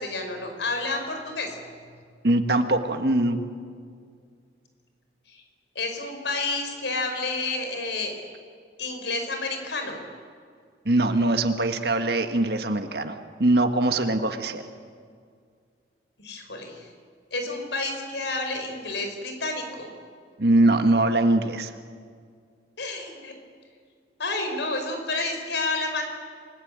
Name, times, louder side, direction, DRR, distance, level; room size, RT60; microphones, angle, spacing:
voice 1, 0.0-1.6 5.3-5.4 5.8-8.1 8.8-10.0 16.2-16.9 17.3-19.9 22.8-23.3 24.2-26.0, left 3 dB, 80° left, 5 dB, 5.2 m, -30 dB
voice 2, 2.2-3.4 10.8-14.7 20.4-21.7, right 2 dB, 65° right, 6 dB, 1.6 m, -22 dB
28.0 x 20.0 x 8.9 m, 2.1 s
head